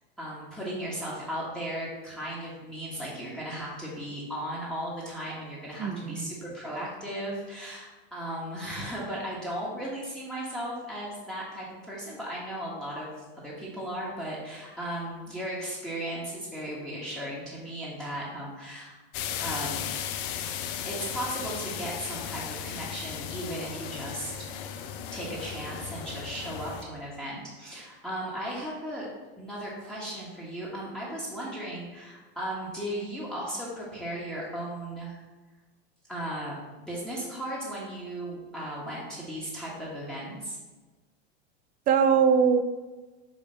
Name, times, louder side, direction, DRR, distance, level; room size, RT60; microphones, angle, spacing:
voice 1, 0.2-13.1 13.3-19.0 19.4-19.9 20.8-24.5 25.1-29.1 29.4-35.2 36.1-40.6, right 1 dB, ahead, -7 dB, 1.3 m, -36 dB
voice 2, 5.8-6.3 41.9-42.6, right 6 dB, 25° right, 10 dB, 0.4 m, -22 dB
sound 1, 19.1-26.8, left 9 dB, 55° left, 0.6 m, -36 dB
5.4 x 3.3 x 5.4 m, 1.2 s
supercardioid pair, 125°, 33 cm